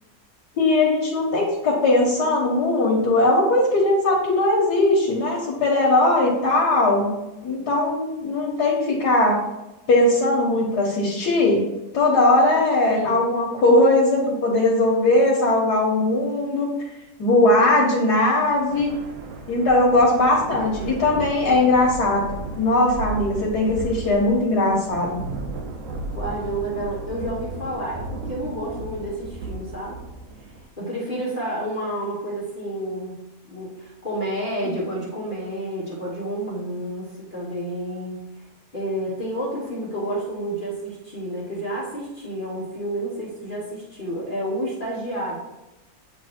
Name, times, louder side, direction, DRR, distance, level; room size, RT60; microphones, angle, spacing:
voice 1, 0.6-7.1 7.4-9.4 9.9-11.6 11.9-16.7 17.2-18.9 19.5-25.2 34.6-34.7, left 2 dB, 85° left, -6 dB, 1.8 m, -19 dB
voice 2, 12.9-13.2 26.1-30.0 30.8-33.2 33.5-38.3 38.7-45.4, right 1 dB, 35° left, -7 dB, 1.6 m, -30 dB
sound 1, 18.4-30.7, right 2 dB, 60° right, 1.1 m, -35 dB
8.6 x 3.2 x 4.3 m, 1.0 s
omnidirectional pair, 1.7 m